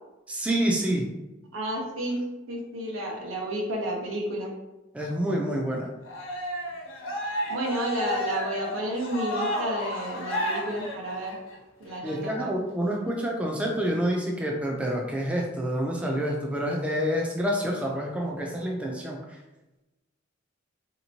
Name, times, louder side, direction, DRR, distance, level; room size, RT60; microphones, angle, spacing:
voice 1, 0.3-1.1 4.9-5.9 12.0-19.2, equal, 5° right, -1 dB, 0.4 m, -28 dB
voice 2, 1.5-4.5 7.5-11.4 11.8-12.5, right 1 dB, 90° right, -1 dB, 0.9 m, -31 dB
Cheering, 6.1-11.5, equal, 80° left, 0.8 m, -32 dB
4.2 x 2.9 x 2.7 m, 1.0 s
head